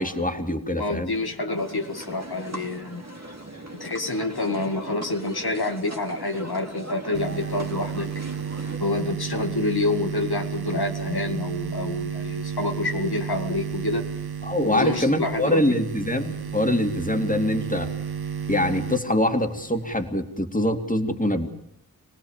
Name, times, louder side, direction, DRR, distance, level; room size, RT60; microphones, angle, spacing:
voice 1, 0.0-1.1 14.4-17.9 18.5-21.5, left 1 dB, 20° left, 5 dB, 2.8 m, -24 dB
voice 2, 0.8-3.1 3.7-8.1 8.8-14.1 14.6-15.6, left 2 dB, 85° left, 3 dB, 2.2 m, -28 dB
sound 1, 1.6-8.8, right 1 dB, 45° right, 2.5 m, -39 dB
sound 2, 7.1-20.1, right 7 dB, 90° right, 1.4 m, -32 dB
26.0 x 18.5 x 7.5 m, 0.72 s
wide cardioid pair, 45°, 37 cm